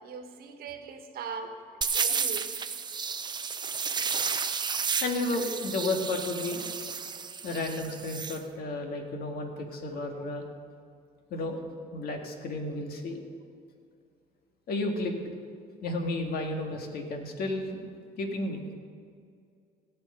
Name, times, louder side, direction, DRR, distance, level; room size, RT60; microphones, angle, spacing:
voice 1, 0.0-2.4, right 5 dB, 65° right, 5 dB, 1.4 m, -40 dB
sound 1, 1.8-8.4, right 6 dB, 25° right, 0.6 m, -32 dB
voice 2, 5.0-6.6 7.4-10.4 11.3-11.6 11.9-13.2 14.7-15.1 15.8-17.8 18.2-18.6, left 2 dB, 65° left, 3 dB, 1.9 m, -32 dB
17.5 x 7.4 x 5.5 m, 2.3 s
cardioid pair, 110°, 17 cm